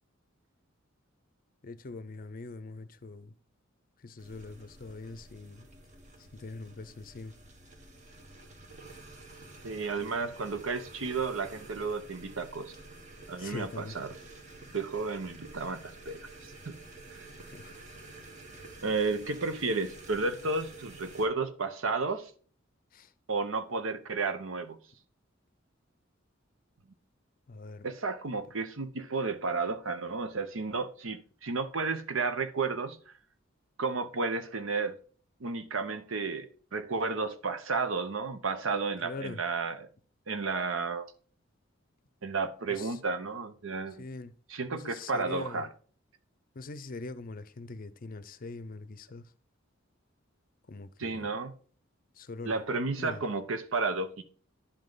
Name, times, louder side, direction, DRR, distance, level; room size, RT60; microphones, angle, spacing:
voice 1, 1.6-3.3 4.0-5.6 6.2-7.4 13.4-14.0 17.5-17.8 22.9-23.1 27.5-27.9 39.0-39.4 42.7-43.0 44.0-44.4 44.7-45.7 46.5-49.3 50.7-51.3 52.1-52.6 53.0-53.2, left 3 dB, 45° left, 0.5 m, -42 dB
sound 1, 4.2-21.3, right 2 dB, 35° right, 1.2 m, -50 dB
voice 2, 9.6-12.7 13.3-14.1 14.7-16.2 16.7-16.8 17.1-17.3 18.8-22.3 23.3-24.8 27.8-33.1 33.8-34.9 35.4-39.9 40.3-41.1 42.2-44.0 44.5-45.7 51.0-51.5 52.4-54.2, right 4 dB, 75° right, 0.8 m, -32 dB
10.0 x 5.4 x 3.9 m
head